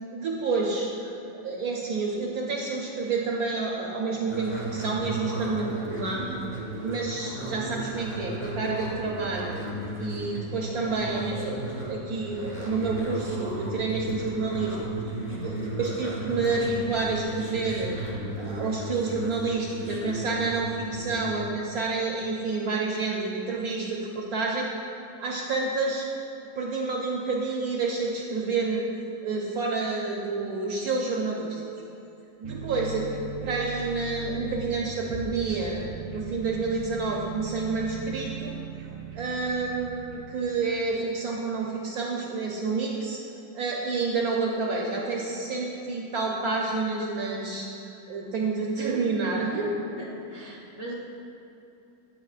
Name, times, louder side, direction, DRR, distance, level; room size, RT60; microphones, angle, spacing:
voice 1, 0.1-6.3 6.8-9.6 10.0-14.8 15.4-17.9 18.4-24.7 25.2-26.0 26.6-28.9 29.2-31.6 32.4-33.1 33.4-35.9 36.1-38.6 39.1-43.2 43.5-47.7 48.1-49.7, right 4 dB, 70° right, -2 dB, 0.9 m, -29 dB
sound 1, 4.3-21.3, right 1 dB, 10° left, 0.7 m, -35 dB
voice 2, 15.2-15.7 49.4-49.6 50.0-50.9, right 1 dB, 65° left, -5 dB, 0.3 m, -40 dB
sound 2, 32.4-40.7, right 4 dB, 85° right, 1.4 m, -39 dB
9.1 x 7.3 x 2.4 m, 2.9 s
omnidirectional pair, 2.1 m